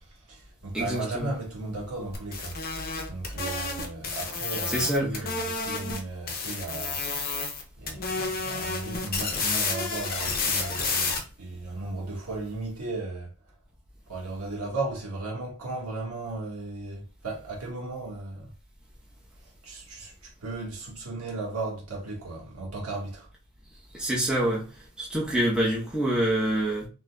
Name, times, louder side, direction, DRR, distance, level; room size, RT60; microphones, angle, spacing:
voice 1, 0.0-2.6 3.1-7.0 7.8-13.3 14.1-18.5 19.6-23.3, right 2 dB, 85° right, 1.5 m, -36 dB
voice 2, 0.7-1.3 4.7-5.3 23.9-24.7 25.0-26.9, right 1 dB, 5° right, 0.8 m, -26 dB
sound 1, 2.1-6.0 6.3-7.6 7.9-11.2, left 4 dB, 40° left, 0.7 m, -30 dB
3.8 x 2.8 x 2.2 m
head